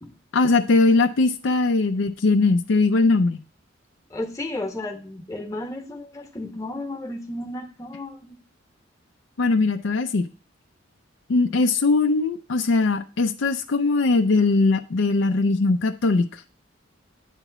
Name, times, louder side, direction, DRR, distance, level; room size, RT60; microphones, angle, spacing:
voice 1, 0.3-3.4 9.4-10.3 11.3-16.4, left 3 dB, 70° left, 7 dB, 0.5 m, -20 dB
voice 2, 4.1-8.4, left 1 dB, 15° left, 4 dB, 1.0 m, -33 dB
8.9 x 3.0 x 5.7 m, 0.35 s
head